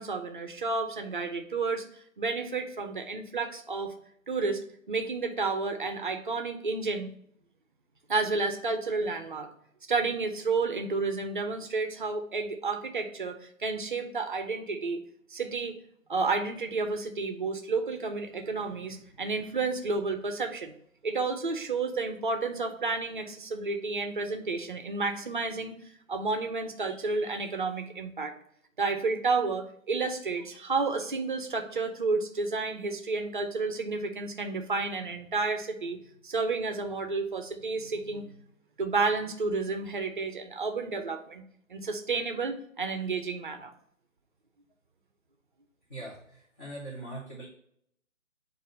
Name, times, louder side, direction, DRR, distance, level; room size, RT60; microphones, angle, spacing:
voice 1, 0.0-1.8 2.2-3.9 4.3-4.6 4.9-7.1 8.1-9.5 9.9-15.0 15.3-15.7 16.1-20.7 21.0-25.8 26.1-28.3 28.8-36.0 36.2-38.4 38.8-41.4 41.7-43.7, right 4 dB, 35° right, 5 dB, 0.7 m, -31 dB
voice 2, 45.9-47.4, right 1 dB, 15° left, -8 dB, 0.9 m, -41 dB
7.3 x 2.6 x 5.1 m, 0.68 s
figure-of-eight pair, 145°, 41 cm